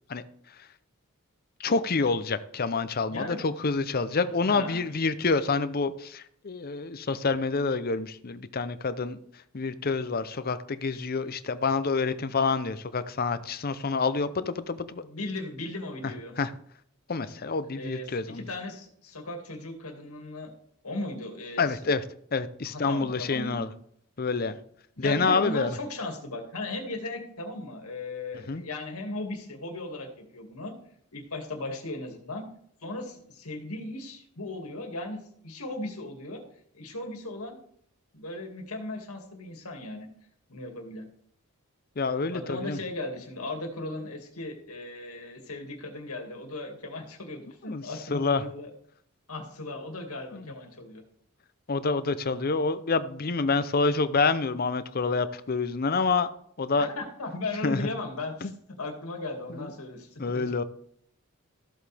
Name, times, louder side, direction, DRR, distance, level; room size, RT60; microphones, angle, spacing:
voice 1, 1.6-9.2 9.5-15.1 16.4-16.5 17.1-18.5 21.6-22.0 22.3-23.7 24.2-24.6 25.0-25.8 28.5-28.6 42.0-42.8 47.7-47.8 48.1-48.4 50.3-50.5 51.7-56.3 56.6-56.9 57.6-57.9 58.4-58.5 59.5-59.7 60.2-60.6, left 4 dB, 45° left, 0.6 m, -27 dB
voice 2, 3.1-3.4 4.2-4.8 15.0-16.4 17.8-20.5 20.8-21.9 22.7-23.7 25.0-30.7 31.1-32.5 32.8-35.2 35.4-36.4 36.7-37.6 38.1-40.1 40.5-41.1 42.3-48.7 49.3-51.0 56.8-58.5 58.8-60.6, left 2 dB, 85° left, 2.2 m, -37 dB
14.0 x 7.9 x 3.4 m
head